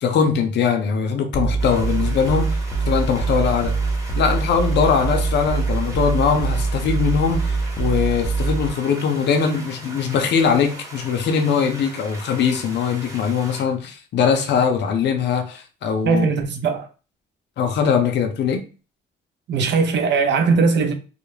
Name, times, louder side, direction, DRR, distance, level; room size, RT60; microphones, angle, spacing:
voice 1, 0.0-2.6 2.9-3.8 4.2-16.3 17.6-18.6, left 6 dB, 60° left, 0.5 m, -21 dB
sound 1, 1.3-8.7, right 4 dB, 15° left, 0.4 m, -23 dB
sound 2, 1.6-13.6, right 1 dB, 15° right, 1.0 m, -39 dB
voice 2, 16.0-16.9 19.5-20.9, right 4 dB, 65° right, 0.6 m, -19 dB
2.3 x 2.0 x 3.1 m
cardioid pair, 90°, 20 cm